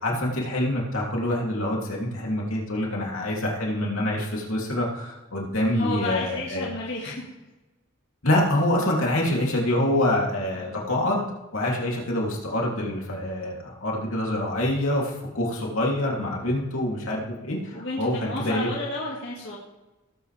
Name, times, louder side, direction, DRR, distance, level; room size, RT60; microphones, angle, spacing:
voice 1, 0.0-6.7 8.2-11.3 11.5-18.7, left 1 dB, 80° left, -2 dB, 3.0 m, -26 dB
voice 2, 5.8-7.3 10.6-10.9 17.7-19.6, left 2 dB, 60° left, -4 dB, 2.1 m, -32 dB
18.0 x 8.7 x 3.4 m, 1.1 s
head